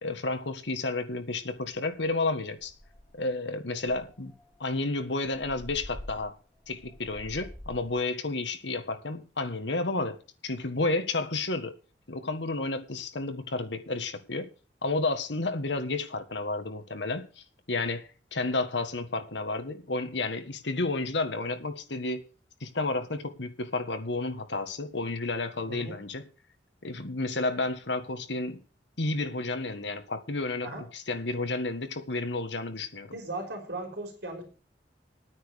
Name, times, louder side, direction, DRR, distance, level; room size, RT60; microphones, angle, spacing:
voice 1, 0.0-2.7 3.1-4.3 4.6-6.4 6.7-10.2 10.4-11.7 12.1-14.5 14.8-22.2 22.6-26.2 26.8-28.6 29.0-33.1, left 2 dB, 75° left, 1.6 m, -31 dB
sound 1, 2.6-3.3 3.8-8.0, left 1 dB, 5° left, 3.3 m, -47 dB
voice 2, 25.7-26.0 30.6-30.8 33.1-34.4, right 2 dB, 65° right, 3.9 m, -37 dB
11.0 x 9.3 x 6.5 m
head